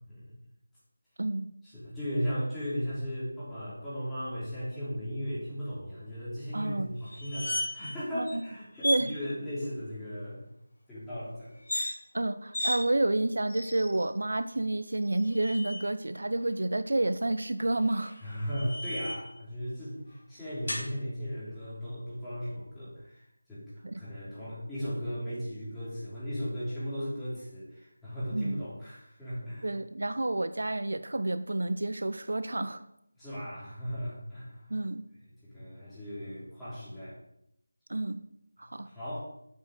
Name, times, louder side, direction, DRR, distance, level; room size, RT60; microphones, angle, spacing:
voice 1, 0.1-0.4 1.6-10.4 10.9-11.5 18.2-23.2 23.5-29.7 33.2-34.7 35.4-37.2 38.6-39.2, equal, 5° left, -12 dB, 3.3 m, -36 dB
voice 2, 6.5-6.9 8.1-8.3 8.8-9.1 12.1-18.1 23.8-24.0 28.3-28.6 29.6-32.8 34.7-35.0 37.9-38.2 38.6-38.9, right 2 dB, 70° right, 12 dB, 0.6 m, -29 dB
sound 1, 7.0-8.0 8.2-8.4 8.8-9.1 11.5-11.9 12.5-12.8 13.5-14.1 15.0-15.8 17.7-19.3 20.7-20.9, left 1 dB, 55° left, 3.6 m, -35 dB
8.3 x 6.2 x 6.5 m, 0.77 s
figure-of-eight pair, 170°, 0 cm